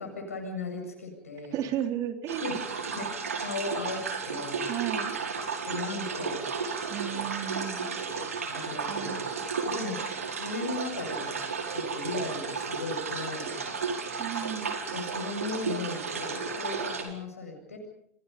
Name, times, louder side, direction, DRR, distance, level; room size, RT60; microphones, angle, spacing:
voice 1, 0.0-1.6 2.4-2.6 2.9-4.7 5.7-6.4 7.0-7.2 8.1-10.1 10.4-11.4 11.7-13.8 14.9-17.8, left 3 dB, 85° left, 3 dB, 7.6 m, -37 dB
voice 2, 1.5-2.5 4.7-5.1 6.9-7.9 8.9-9.2 14.2-14.7, right 11 dB, 50° right, 5 dB, 3.6 m, -34 dB
sound 1, 2.3-17.0, right 5 dB, 85° right, 5.0 m, -33 dB
30.0 x 25.5 x 5.4 m, 0.70 s
hypercardioid pair, 85°, 8 cm